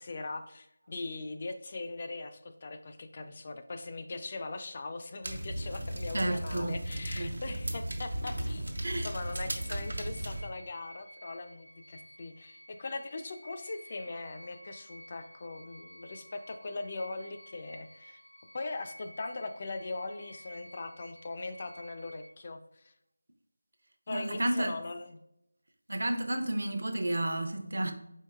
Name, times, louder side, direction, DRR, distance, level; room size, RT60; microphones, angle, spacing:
voice 1, 0.0-18.2 18.5-22.9 24.1-25.2, left 3 dB, 30° left, 0.3 m, -40 dB
sound 1, 5.2-10.4, right 1 dB, 85° right, 0.9 m, -36 dB
voice 2, 6.1-6.8 7.1-7.4 8.8-9.1 24.1-24.8 25.9-27.9, right 1 dB, 65° right, 0.6 m, -31 dB
sound 2, 8.1-22.3, equal, 75° left, 1.2 m, -53 dB
4.5 x 4.2 x 2.3 m
figure-of-eight pair, 170°, 0 cm